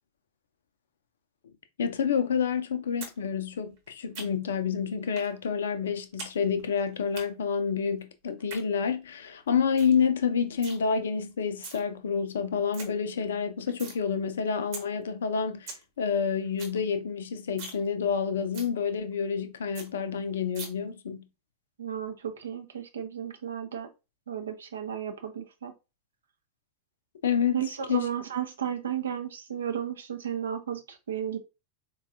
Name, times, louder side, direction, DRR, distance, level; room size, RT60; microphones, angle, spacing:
voice 1, 1.8-21.3 27.2-27.6 27.9-28.1, left 6 dB, 65° left, 0.4 m, -28 dB
sound 1, 3.0-3.2 3.5-4.6 5.2-5.3 5.6-6.3 6.6-7.2 8.3-8.6 9.1-9.2 9.5-9.6 9.8-10.0 10.3-10.8 11.4-11.8 12.2-12.3 12.5-12.9 13.2-14.0 14.3-14.4 14.7-14.8 15.2-15.3 15.5-15.8 16.2-16.3 16.5-16.8 17.1-17.2 17.5-17.8 18.1-18.2 18.5-18.7 19.1-19.2 19.4-19.5 19.7-19.9 20.5-20.7, right 4 dB, 45° right, 1.0 m, -41 dB
voice 2, 21.8-23.9 24.3-25.7 27.5-31.4, right 9 dB, 65° right, 0.5 m, -34 dB
3.9 x 2.3 x 2.6 m
figure-of-eight pair, 90°, 0 cm